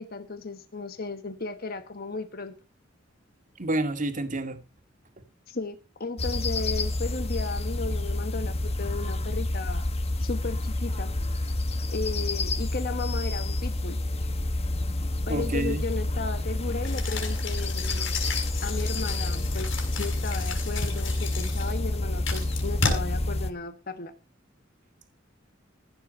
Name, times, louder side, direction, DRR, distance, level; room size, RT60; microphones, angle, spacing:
voice 1, 0.0-2.6 5.5-9.9 10.2-11.1 11.9-14.0 15.3-18.1 18.6-24.1, left 3 dB, 50° left, 1.2 m, -35 dB
voice 2, 3.6-4.6 15.3-15.8, right 1 dB, 40° right, 2.0 m, -28 dB
sound 1, 6.2-23.5, left 2 dB, 30° left, 1.3 m, -29 dB
sound 2, 16.8-22.9, left 4 dB, 85° left, 5.4 m, -33 dB
15.0 x 8.7 x 5.3 m
head